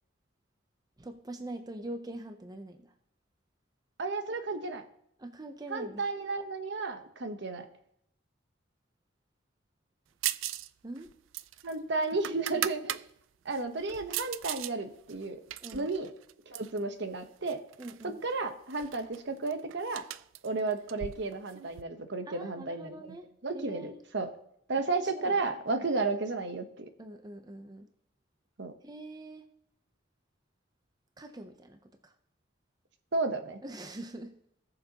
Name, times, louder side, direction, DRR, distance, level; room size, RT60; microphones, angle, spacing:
voice 1, 1.0-2.9 5.2-6.1 10.8-11.1 12.5-12.7 15.6-15.9 17.8-18.2 22.3-24.0 25.0-25.4 25.8-25.9 27.0-27.9 28.8-29.5 31.2-32.1 33.6-34.3, right 1 dB, 20° right, 7 dB, 0.6 m, -44 dB
voice 2, 4.0-4.8 5.7-7.7 11.6-13.0 13.4-15.4 15.7-16.1 16.5-17.6 18.0-20.0 20.4-23.1 23.4-24.3 24.7-26.9 28.6-28.7 33.1-33.6, right 3 dB, 65° right, 8 dB, 1.0 m, -33 dB
sound 1, 10.2-10.7 11.0-13.0 13.5-14.7 15.1-16.8 17.5-18.1 18.3-18.4 18.7-21.8, right 13 dB, 85° right, 0.3 m, -38 dB
18.0 x 6.8 x 2.9 m, 0.74 s
head